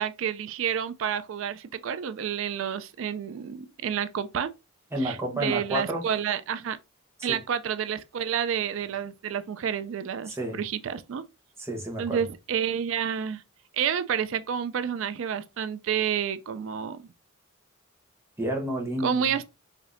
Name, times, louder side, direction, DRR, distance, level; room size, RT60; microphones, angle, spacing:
voice 1, 0.0-4.5 5.0-6.8 7.2-11.2 12.0-13.4 13.7-17.1 19.0-19.5, right 8 dB, 65° right, 0.3 m, -29 dB
voice 2, 4.9-6.1 7.2-7.4 10.3-10.6 11.6-12.2 18.4-19.4, right 1 dB, 10° right, 0.9 m, -30 dB
5.0 x 2.7 x 2.5 m
head